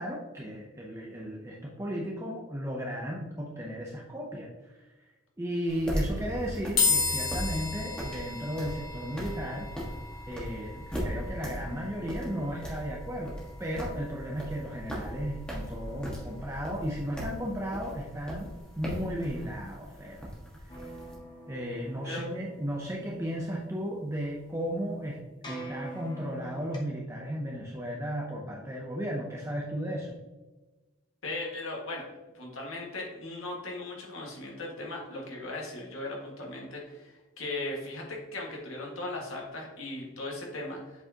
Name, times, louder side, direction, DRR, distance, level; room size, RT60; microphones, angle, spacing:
voice 1, 0.0-5.1 5.4-9.7 10.3-18.5 18.8-20.3 21.5-25.2 25.5-30.2, equal, 15° right, -2 dB, 0.6 m, -35 dB
sound 1, 5.7-21.1, equal, 5° left, 1.4 m, -38 dB
sound 2, 6.8-20.1, left 4 dB, 40° left, 1.8 m, -36 dB
sound 3, 20.7-26.8, right 1 dB, 20° left, 0.9 m, -46 dB
voice 2, 31.2-32.1 32.3-41.0, left 2 dB, 75° left, -2 dB, 1.8 m, -38 dB
7.9 x 4.6 x 2.9 m, 1.2 s
head